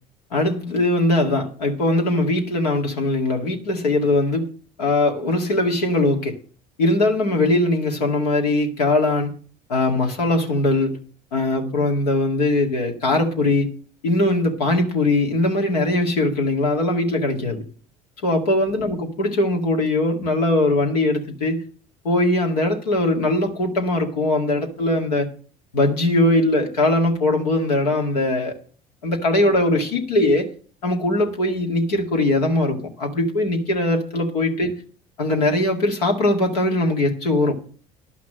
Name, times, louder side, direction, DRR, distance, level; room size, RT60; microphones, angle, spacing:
voice 1, 0.3-4.5 4.8-6.4 6.8-9.3 9.7-11.0 11.3-13.7 14.0-17.6 18.2-21.6 22.0-25.3 25.7-28.5 29.0-30.5 30.8-34.8 35.2-37.5, left 2 dB, 90° left, 2.0 m, -20 dB
11.0 x 6.0 x 7.5 m
hypercardioid pair, 70°, 20 cm